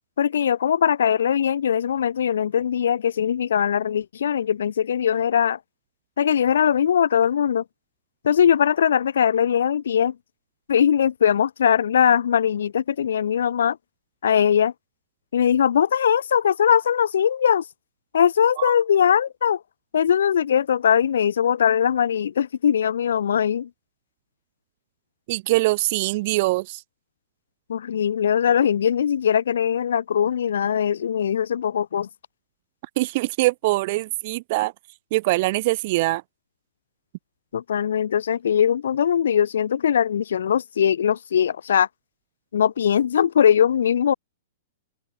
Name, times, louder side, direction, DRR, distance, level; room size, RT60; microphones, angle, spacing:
voice 1, 0.2-5.6 6.2-7.6 8.2-10.1 10.7-13.8 14.2-14.7 15.3-17.6 18.1-19.6 19.9-23.7 27.7-32.1 37.5-41.9 42.5-44.1, left 8 dB, 90° left, 3.1 m, -20 dB
voice 2, 25.3-26.8 33.0-34.7 35.1-36.2, right 21 dB, 35° right, 0.5 m, -23 dB
open air
hypercardioid pair, 170°, 0 cm